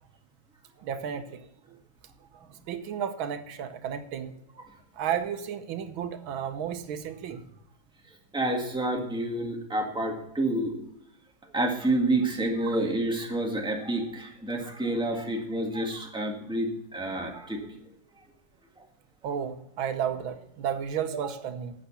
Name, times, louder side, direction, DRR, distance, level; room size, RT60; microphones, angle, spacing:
voice 1, 0.8-1.8 2.3-4.7 4.9-7.4 19.2-21.7, right 8 dB, 85° right, 9 dB, 1.7 m, -33 dB
voice 2, 8.3-10.7 11.5-17.7, right 1 dB, 5° right, 1 dB, 1.6 m, -28 dB
11.5 x 8.0 x 5.7 m, 0.79 s
omnidirectional pair, 2.1 m